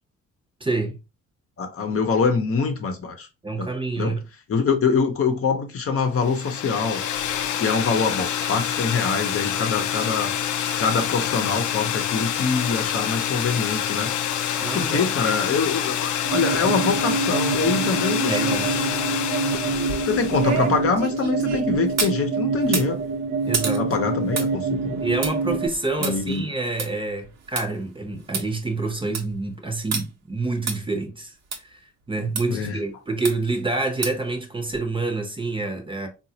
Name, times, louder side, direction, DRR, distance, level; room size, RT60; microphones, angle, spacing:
voice 1, 0.6-1.0 3.4-4.2 14.6-15.1 18.3-18.7 23.5-23.9 25.0-31.3 31.6-31.8 32.1-36.1, right 3 dB, 15° right, 0.8 m, -27 dB
voice 2, 1.6-3.3 3.6-3.7 4.0-4.1 4.5-7.0 7.6-10.3 10.8-14.4 14.7-18.7 20.0-23.0 23.8-25.0 26.0-26.4 32.5-32.8, left 5 dB, 50° left, 0.8 m, -24 dB
sound 1, 6.2-20.7, left 10 dB, 75° left, 0.5 m, -27 dB
sound 2, 16.2-25.7, right 4 dB, 45° right, 0.5 m, -26 dB
sound 3, 19.7-22.2 22.6-27.6 28.0-28.1 28.3-28.4 28.9-29.3 29.9-30.0 30.7-30.8 31.5-31.6 32.3-32.4 33.2-33.6 34.0-34.3 34.7-34.8, right 5 dB, 60° right, 1.0 m, -30 dB
3.8 x 2.5 x 2.8 m
cardioid pair, 90°, 30 cm